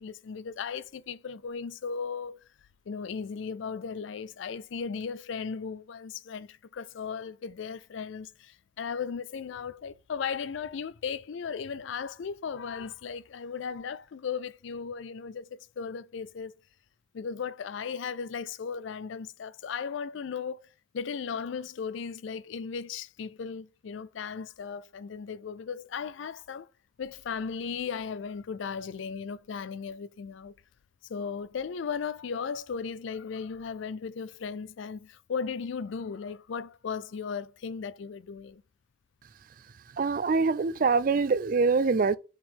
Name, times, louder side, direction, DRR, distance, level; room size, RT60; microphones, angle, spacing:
voice 1, 0.0-2.4 2.9-16.5 17.1-20.6 20.9-26.7 27.0-30.5 31.1-38.6, left 6 dB, 70° left, 0.4 m, -36 dB
voice 2, 40.0-42.2, right 4 dB, 45° right, 0.3 m, -24 dB
4.8 x 3.7 x 5.3 m
head